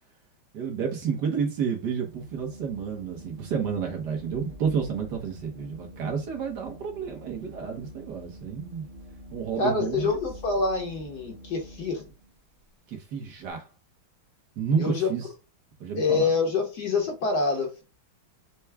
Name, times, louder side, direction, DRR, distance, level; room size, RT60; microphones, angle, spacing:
voice 1, 0.5-8.9 9.3-10.2 12.9-13.7 14.6-15.3 15.8-16.3, right 6 dB, 60° right, 1.4 m, -30 dB
Organ, 2.0-12.3, equal, 80° right, 0.4 m, -46 dB
voice 2, 9.6-12.1 14.8-15.1 15.9-17.8, left 4 dB, 55° left, 1.5 m, -26 dB
5.6 x 2.3 x 3.4 m
omnidirectional pair, 2.2 m